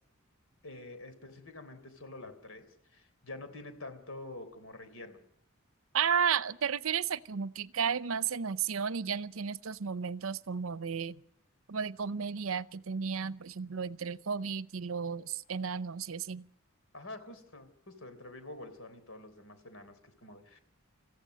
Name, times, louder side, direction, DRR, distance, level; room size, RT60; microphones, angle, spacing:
voice 1, 0.6-5.2 16.9-20.6, left 2 dB, 75° left, 9 dB, 3.7 m, -47 dB
voice 2, 5.9-11.2 11.7-16.4, right 6 dB, 75° right, 17 dB, 0.7 m, -33 dB
27.0 x 15.0 x 6.5 m, 0.76 s
head